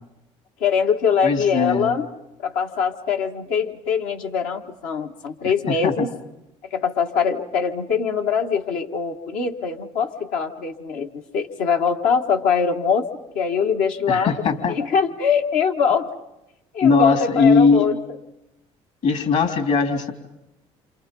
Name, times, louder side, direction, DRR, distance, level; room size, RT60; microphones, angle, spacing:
voice 1, 0.6-2.1 2.4-6.1 6.7-13.1 13.4-14.3 14.7-16.1 16.7-18.0, left 6 dB, 85° left, 4 dB, 1.9 m, -22 dB
voice 2, 1.2-1.9 5.7-5.9 14.1-14.8 16.8-17.9 19.0-20.1, left 4 dB, 65° left, 7 dB, 3.6 m, -19 dB
29.0 x 27.0 x 5.5 m, 0.91 s
supercardioid pair, 80°, 13 cm